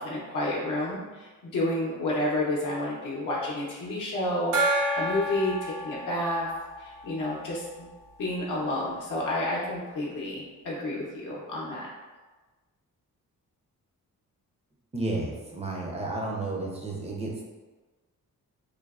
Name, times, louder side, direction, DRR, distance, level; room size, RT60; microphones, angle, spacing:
voice 1, 0.0-6.5 6.8-7.9 8.2-11.9, left 1 dB, 70° left, -5 dB, 0.6 m, -30 dB
Gong, 4.5-7.8, right 1 dB, 65° right, 0.6 m, -30 dB
voice 2, 14.9-17.4, right 2 dB, 20° right, -1 dB, 0.4 m, -32 dB
3.2 x 2.0 x 2.3 m, 1.3 s
wide cardioid pair, 120°, 33 cm